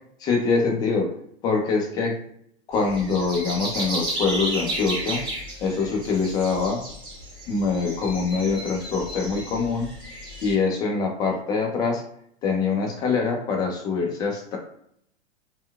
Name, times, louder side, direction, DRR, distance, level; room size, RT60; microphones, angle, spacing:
voice 1, 0.2-1.1 1.4-2.2 2.7-5.2 5.6-6.8 7.5-9.9 10.4-12.0 12.4-14.6, left 4 dB, 10° left, 1 dB, 0.3 m, -24 dB
sound 1, 2.7-10.5, right 1 dB, 15° right, 1.2 m, -33 dB
4.3 x 2.1 x 2.2 m, 0.68 s
figure-of-eight pair, 105°, 34 cm